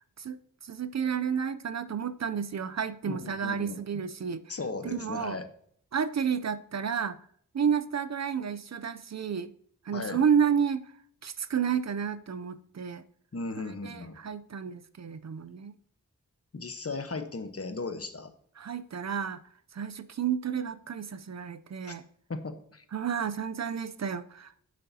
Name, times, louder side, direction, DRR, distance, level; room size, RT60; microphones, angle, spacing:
voice 1, 0.2-4.4 4.8-5.4 5.9-7.2 7.5-9.5 9.9-10.8 11.2-13.0 13.8-15.7 18.6-19.4 19.7-22.0 22.9-24.5, right 7 dB, 55° right, 0.5 m, -31 dB
voice 2, 3.1-3.8 4.5-5.5 9.9-10.2 13.3-14.2 16.5-18.3 21.8-22.0 22.3-22.8, left 3 dB, 45° left, 1.1 m, -36 dB
9.8 x 7.6 x 2.8 m
wide cardioid pair, 75°, 32 cm